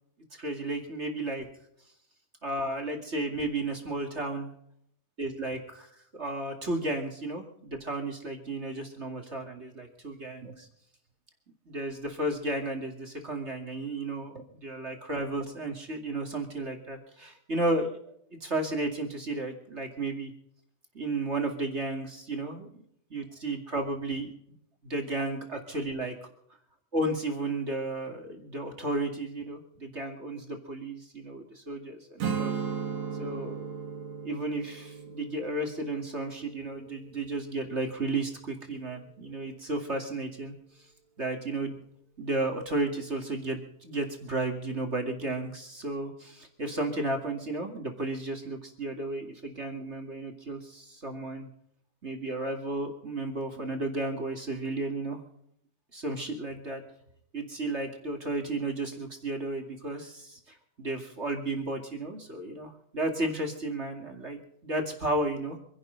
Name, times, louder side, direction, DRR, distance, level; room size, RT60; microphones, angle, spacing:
voice 1, 0.3-1.5 2.4-4.5 5.2-5.9 6.1-10.7 11.7-18.0 18.4-20.3 20.9-22.8 23.1-24.3 24.8-26.1 26.9-32.5 33.2-33.6 34.2-40.5 41.2-41.8 42.2-51.5 52.0-55.2 55.9-56.8 57.3-65.6, right 2 dB, 25° right, 3 dB, 1.9 m, -33 dB
Strum, 32.2-37.5, right 6 dB, 55° right, 3.1 m, -36 dB
26.5 x 11.0 x 4.0 m, 0.72 s
omnidirectional pair, 4.1 m